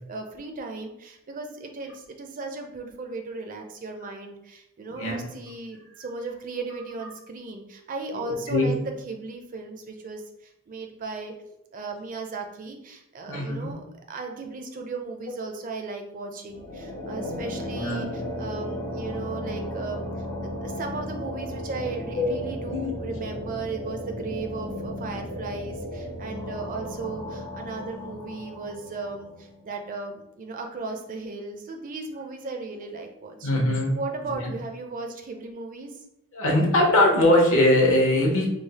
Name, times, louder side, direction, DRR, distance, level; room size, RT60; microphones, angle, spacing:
voice 1, 0.1-11.3 11.7-20.1 20.4-33.6 34.0-36.0, right 3 dB, 35° right, 4 dB, 0.4 m, -36 dB
voice 2, 4.9-5.2 5.9-6.0 8.2-8.7 13.3-13.7 17.2-17.4 17.7-18.1 22.2-22.3 22.7-22.9 33.4-34.0 34.4-34.5 36.3-38.4, left 1 dB, 60° left, 0 dB, 0.9 m, -21 dB
sound 1, 16.5-29.6, left 1 dB, 85° left, 1.1 m, -35 dB
3.3 x 2.0 x 4.0 m, 0.83 s
head